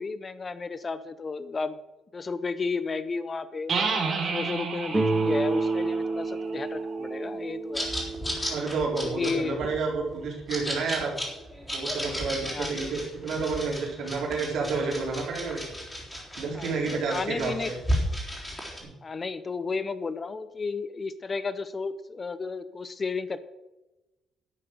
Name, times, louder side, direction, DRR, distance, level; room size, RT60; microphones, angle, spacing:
voice 1, 0.0-1.8 2.1-3.7 4.3-7.9 9.0-9.6 12.5-13.0 16.5-16.7 17.1-17.7 19.0-23.4, left 4 dB, 25° left, 14 dB, 0.6 m, -33 dB
sound 1, 3.7-7.3, right 4 dB, 45° right, 3.1 m, -32 dB
Guitar, 4.9-9.7, right 3 dB, 20° right, 1.3 m, -30 dB
sound 2, 7.7-18.8, equal, 10° left, 3.7 m, -34 dB
voice 2, 8.5-11.2 11.7-15.8 16.4-17.8 18.8-18.9, right 4 dB, 70° right, -1 dB, 4.0 m, -30 dB
11.5 x 7.8 x 7.7 m, 1.0 s
cardioid pair, 150°, 0 cm